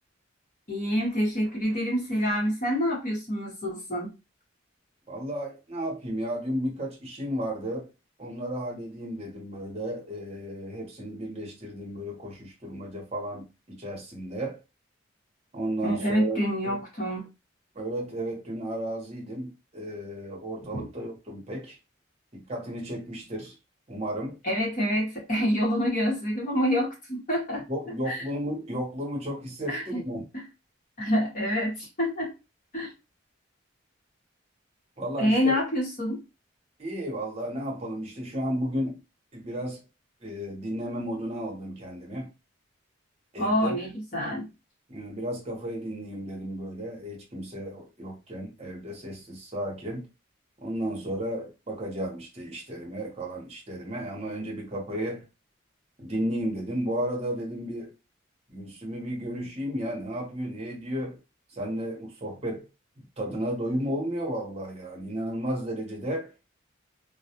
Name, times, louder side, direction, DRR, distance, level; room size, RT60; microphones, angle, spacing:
voice 1, 0.7-4.1 15.8-17.3 20.7-20.9 24.4-27.7 28.1-28.2 29.7-29.8 31.0-32.3 32.7-32.9 35.2-36.2 43.4-44.5, equal, 40° left, 0.9 m, -27 dB
voice 2, 5.1-7.9 8.2-14.6 15.5-16.8 17.7-21.8 22.3-23.6 23.9-24.4 27.7-30.2 35.0-35.6 36.8-39.0 39.3-39.8 40.2-42.3 43.3-43.8 44.9-50.1 50.6-55.2 56.0-58.0 58.5-61.2 61.5-62.7 63.2-66.3, equal, 30° right, 0.8 m, -33 dB
2.2 x 2.0 x 2.8 m
head